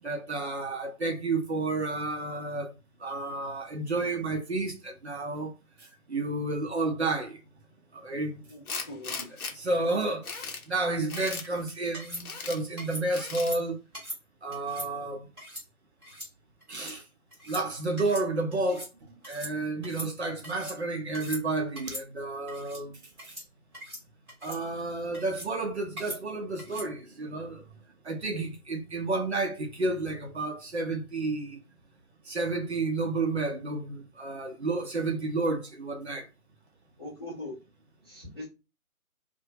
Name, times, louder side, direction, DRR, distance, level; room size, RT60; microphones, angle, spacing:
voice 1, 0.0-2.7 3.0-5.5 5.8-7.4 7.9-8.4 9.5-13.8 14.4-15.3 16.7-17.0 17.5-23.4 24.4-27.6 28.0-31.6 32.2-36.3, right 2 dB, 50° right, 0.7 m, -31 dB
Tools, 8.7-9.5 10.0-10.6 11.1-11.5 12.1-12.6 13.1-13.5, left 4 dB, 85° left, 0.7 m, -37 dB
voice 2, 8.9-9.3 37.0-37.6 38.0-38.5, left 1 dB, 20° left, 0.6 m, -40 dB
sound 1, 11.1-11.4 11.9-12.2 12.8-13.0 13.4-13.6 13.9-14.2 14.5-14.9 15.4-15.6 16.0-16.3 16.6-16.9 17.3-17.6 18.0-18.3 18.5-18.9 19.2-19.5 19.8-20.8 21.1-21.4 21.8-22.0 22.5-22.8 23.2-23.5 23.7-24.0 24.3-24.6 25.1-25.5 26.0-26.2 26.6-26.9, equal, 5° right, 0.9 m, -41 dB
2.4 x 2.2 x 2.7 m
figure-of-eight pair, 155°, 43 cm